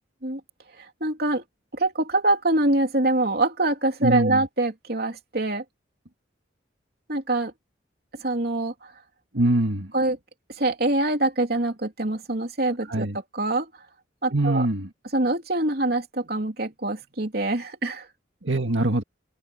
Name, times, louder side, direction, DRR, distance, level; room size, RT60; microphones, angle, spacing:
voice 1, 0.8-1.4 1.7-5.6 7.1-7.5 8.2-8.9 9.9-10.2 10.6-13.7 14.2-14.7 15.1-18.1, right 2 dB, 55° right, 3.3 m, -25 dB
voice 2, 4.0-4.4 9.3-9.9 12.9-13.2 14.3-14.9 18.4-19.0, right 1 dB, 85° right, 2.1 m, -23 dB
head